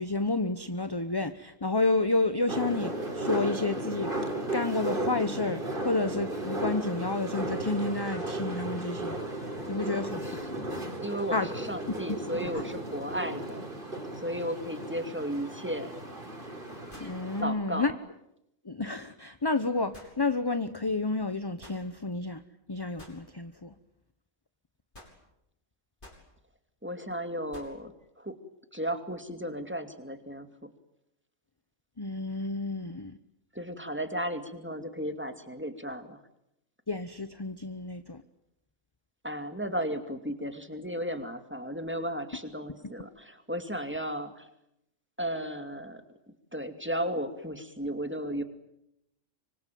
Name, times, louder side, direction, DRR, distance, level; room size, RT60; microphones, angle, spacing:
voice 1, 0.0-4.1 4.5-9.2 9.7-11.0 11.3-11.5 12.5-12.6 17.0-17.9 18.6-22.4 22.7-23.7 32.0-33.2 36.9-38.2, left 3 dB, 20° left, 11 dB, 1.0 m, -30 dB
sound 1, 2.5-17.4, right 1 dB, 40° right, 4.5 m, -35 dB
voice 2, 11.0-13.7 14.2-15.9 17.4-17.9 26.8-28.4 28.7-30.7 33.5-36.2 39.2-44.5 45.2-46.0 46.5-48.4, equal, 10° right, 7 dB, 2.5 m, -34 dB
sound 2, 15.7-15.8 16.9-17.2 19.9-20.2 21.6-21.8 23.0-23.2 24.9-25.2 26.0-26.3 27.5-27.8, left 1 dB, 40° left, 6.6 m, -50 dB
25.5 x 25.5 x 9.3 m, 0.82 s
omnidirectional pair, 1.3 m